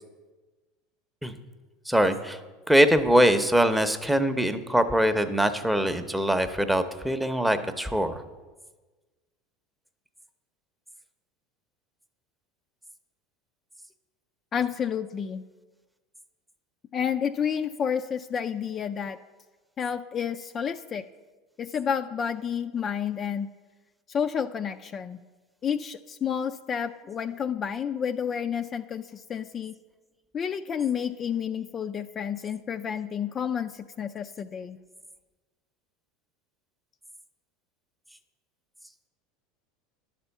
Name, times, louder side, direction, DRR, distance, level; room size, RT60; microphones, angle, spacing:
voice 1, 1.9-2.4 2.7-8.2, equal, 5° right, 9 dB, 0.7 m, -23 dB
voice 2, 14.5-15.4 16.9-19.2 19.8-21.0 21.6-23.5 24.1-25.2 25.6-29.7 30.3-34.8, left 7 dB, 35° left, 7 dB, 0.3 m, -30 dB
11.0 x 4.3 x 7.0 m, 1.3 s
hypercardioid pair, 100°, 0 cm